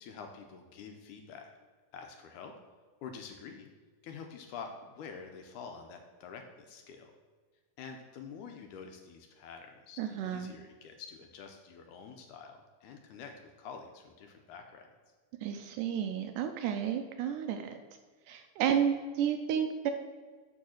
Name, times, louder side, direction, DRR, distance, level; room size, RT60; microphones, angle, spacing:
voice 1, 0.0-1.5 1.9-2.5 3.0-3.7 4.0-7.1 7.8-14.9, left 6 dB, 80° left, 4 dB, 1.9 m, -47 dB
voice 2, 10.0-10.5 15.4-17.8 18.3-19.9, right 8 dB, 80° right, 7 dB, 1.9 m, -31 dB
8.6 x 3.6 x 6.3 m, 1.5 s
omnidirectional pair, 4.0 m